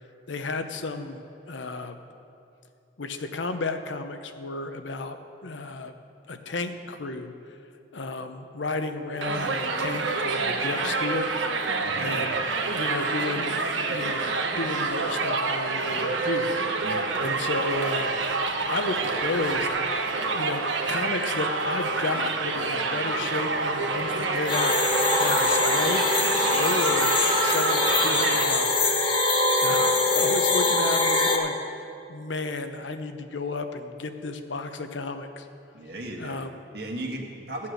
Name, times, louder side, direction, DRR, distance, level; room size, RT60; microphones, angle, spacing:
voice 1, 0.3-2.0 3.0-5.9 6.3-7.3 7.9-11.3 12.0-12.4 12.7-13.6 13.9-14.2 14.6-16.5 17.2-18.1 18.7-19.9 20.4-24.8 25.2-26.1 26.6-27.1 27.4-28.8 29.6-29.8 30.1-31.6 32.1-35.5 36.2-36.6, left 3 dB, 80° left, 8 dB, 0.8 m, -32 dB
Crowd, 9.2-28.4, right 3 dB, 90° right, 1.1 m, -27 dB
voice 2, 11.8-12.2 16.8-17.1 29.6-30.0 35.7-36.5 36.7-37.7, right 1 dB, 55° right, 1 dB, 1.7 m, -36 dB
sound 1, 24.5-31.4, left 2 dB, 30° left, 1.2 m, -23 dB
14.5 x 8.7 x 6.5 m, 2.6 s
head